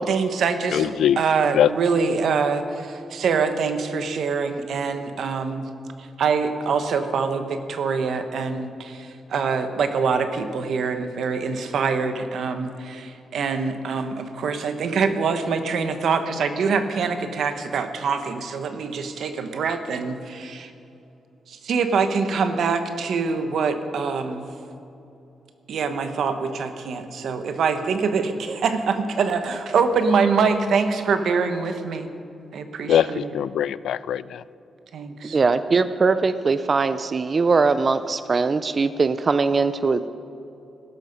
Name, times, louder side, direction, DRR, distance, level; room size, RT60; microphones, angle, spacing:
voice 1, 0.0-5.7 6.0-20.7 21.5-24.5 25.7-32.1 32.5-33.2 34.9-35.4, right 5 dB, 65° right, 8 dB, 1.1 m, -24 dB
voice 2, 0.7-1.2 1.5-1.7 32.9-34.4, left 10 dB, 80° left, 18 dB, 0.3 m, -21 dB
voice 3, 35.2-40.1, right 4 dB, 30° right, 12 dB, 0.4 m, -21 dB
16.5 x 12.5 x 5.4 m, 2.8 s
wide cardioid pair, 165°, 0 cm